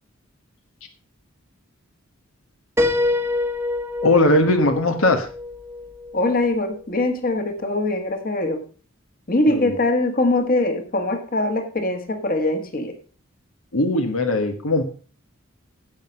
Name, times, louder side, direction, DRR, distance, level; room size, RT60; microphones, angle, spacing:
Piano, 2.8-6.5, left 2 dB, 10° right, 1.1 m, -26 dB
voice 1, 4.0-5.3 9.5-9.8 13.7-14.8, left 2 dB, 80° left, 6 dB, 1.4 m, -19 dB
voice 2, 6.1-8.6 9.3-12.9, left 2 dB, 45° left, 6 dB, 1.8 m, -22 dB
10.5 x 7.8 x 5.3 m, 0.38 s
head